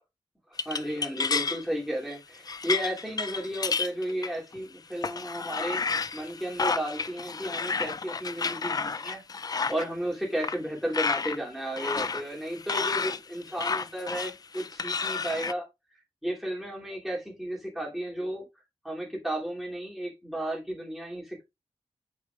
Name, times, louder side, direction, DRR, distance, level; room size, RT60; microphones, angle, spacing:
voice 1, 0.5-5.8 6.1-15.7 16.2-18.5 18.8-21.4, right 1 dB, ahead, 2.7 m, -33 dB
sound 1, 0.6-1.6 2.1-2.2 2.5-4.6 5.0-9.9 10.4-10.6 10.9-11.4 11.8-15.5, left 5 dB, 35° left, 0.3 m, -31 dB
8.6 x 4.9 x 2.4 m
wide cardioid pair, 115°, 11 cm